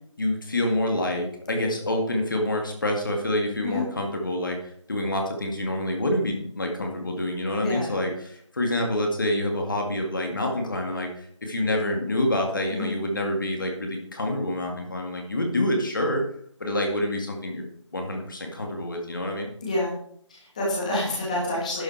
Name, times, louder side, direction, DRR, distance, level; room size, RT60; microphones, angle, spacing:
voice 1, 0.2-16.2 16.6-17.6 17.9-19.5, left 1 dB, 40° left, 2 dB, 2.2 m, -27 dB
voice 2, 7.6-8.0 12.7-12.9 19.6-19.9 20.3-21.8, left 1 dB, 15° left, -5 dB, 1.9 m, -28 dB
11.5 x 7.2 x 4.7 m, 0.63 s
figure-of-eight pair, 175°, 16 cm